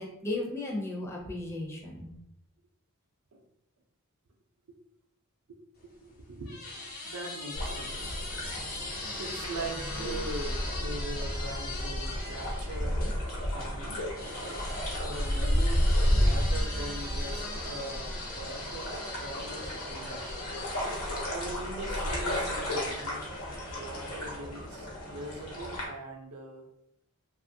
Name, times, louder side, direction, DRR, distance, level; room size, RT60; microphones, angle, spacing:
voice 1, 0.0-2.1, left 2 dB, 10° left, -1 dB, 0.4 m, -35 dB
sound 1, 5.8-13.2 14.2-22.1 22.9-24.6, left 2 dB, 45° left, 0.7 m, -41 dB
voice 2, 5.8-8.2 9.2-14.0 15.0-18.9 19.2-20.4 21.2-23.2 23.7-26.7, right 2 dB, 75° right, 3 dB, 0.5 m, -41 dB
sound 2, 7.5-25.8, equal, 70° left, 1.0 m, -32 dB
2.8 x 2.4 x 2.6 m, 0.82 s
head